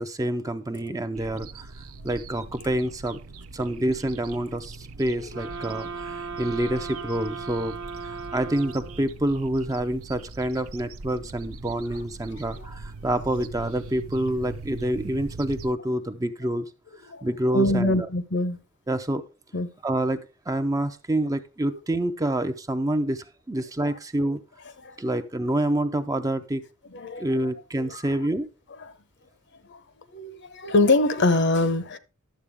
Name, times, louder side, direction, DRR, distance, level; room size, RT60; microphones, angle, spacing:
voice 1, 0.0-1.7 2.0-3.2 3.5-7.8 8.0-16.7 17.2-18.1 18.9-19.2 19.8-20.2 20.5-24.4 25.0-26.6 27.2-28.5, right 1 dB, 15° right, 0.5 m, -27 dB
sound 1, 1.2-15.7, right 3 dB, 75° right, 0.7 m, -42 dB
sound 2, 5.3-9.2, right 5 dB, 60° right, 1.0 m, -37 dB
voice 2, 17.5-18.6 19.5-19.7 21.7-21.8 24.8-25.0 26.9-27.3 27.8-28.2 28.8-28.9 29.7-29.8 30.1-32.0, left 2 dB, 55° left, 0.8 m, -24 dB
11.5 x 7.6 x 3.5 m
head